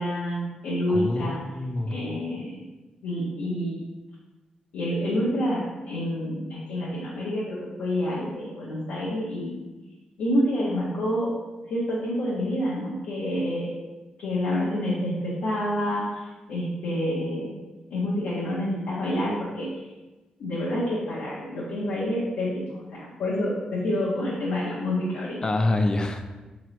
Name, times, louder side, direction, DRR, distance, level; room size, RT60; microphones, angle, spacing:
voice 1, 0.0-1.4 1.9-2.7 3.0-3.8 4.7-9.7 10.2-11.3 11.7-13.7 14.2-17.5 17.9-19.8 20.4-25.4, left 1 dB, 90° left, -8 dB, 0.8 m, -28 dB
voice 2, 0.9-2.0 25.4-26.3, left 2 dB, 30° left, 5 dB, 0.4 m, -26 dB
3.8 x 3.0 x 3.1 m, 1.1 s
cardioid pair, 70°, 3 cm